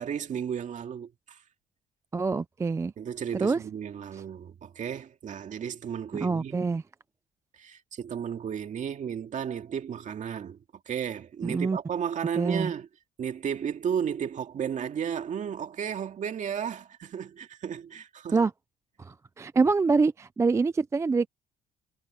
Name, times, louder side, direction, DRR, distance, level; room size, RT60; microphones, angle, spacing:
voice 1, 0.0-1.4 3.0-6.6 7.6-10.6 10.9-12.9 13.2-18.4, right 8 dB, 45° right, 2.2 m, -33 dB
voice 2, 2.1-2.9 3.4-3.6 4.1-4.2 6.2-6.8 11.4-11.8 12.3-12.7 18.3-18.5 19.0-21.3, right 4 dB, 15° right, 0.4 m, -25 dB
cardioid pair, 110°, 17 cm